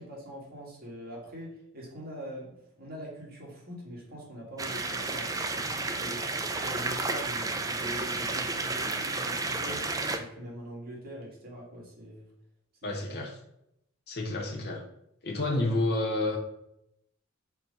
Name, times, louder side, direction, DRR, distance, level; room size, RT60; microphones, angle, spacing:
voice 1, 0.0-2.5 2.8-12.3 12.8-13.2, equal, 45° right, -3 dB, 1.9 m, -43 dB
sound 1, 4.6-10.2, right 3 dB, 15° right, 0.5 m, -32 dB
voice 2, 12.8-13.3 14.1-14.8 15.2-16.4, left 2 dB, 50° left, 0 dB, 1.0 m, -29 dB
4.5 x 4.1 x 5.1 m, 0.79 s
head